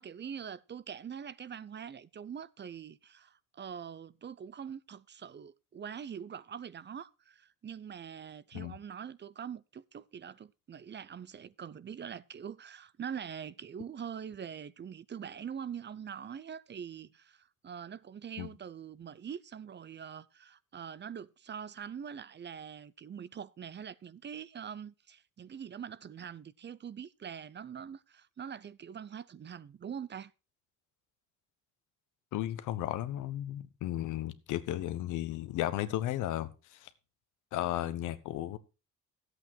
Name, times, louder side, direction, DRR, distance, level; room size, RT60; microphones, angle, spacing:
voice 1, 0.0-30.3, right 8 dB, 35° right, 0.6 m, -44 dB
voice 2, 32.3-36.9 37.5-38.6, left 13 dB, 90° left, 1.0 m, -34 dB
12.5 x 8.2 x 4.5 m
cardioid pair, 90°, 30 cm